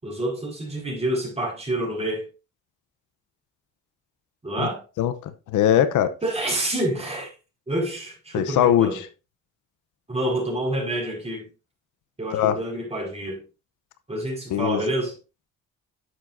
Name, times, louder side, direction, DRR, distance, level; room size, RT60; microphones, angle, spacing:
voice 1, 0.0-2.3 4.4-4.8 6.2-7.3 7.7-9.0 10.1-11.5 12.2-13.4 14.1-15.1, right 1 dB, 20° right, 5.2 m, -28 dB
voice 2, 5.0-6.1 8.3-8.9 12.3-12.6 14.5-14.8, left 10 dB, 80° left, 0.8 m, -21 dB
10.5 x 7.5 x 2.6 m
cardioid pair, 90°, 30 cm